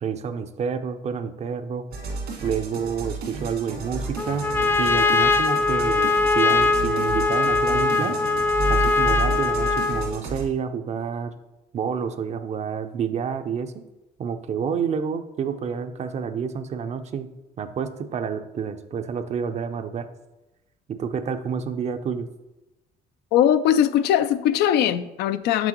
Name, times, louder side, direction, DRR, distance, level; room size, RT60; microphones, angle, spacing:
voice 1, 0.0-1.8 2.4-4.5 4.8-8.2 8.7-11.3 11.7-13.8 14.2-17.3 17.6-20.1 20.9-22.3, right 7 dB, 40° right, 0.5 m, -29 dB
sound 1, 1.9-10.4, right 3 dB, 80° right, 1.9 m, -31 dB
Trumpet, 4.2-10.2, left 3 dB, 15° left, 0.4 m, -21 dB
voice 2, 23.3-25.7, left 10 dB, 75° left, 0.4 m, -20 dB
7.1 x 6.1 x 3.0 m
cardioid pair, 110°, 17 cm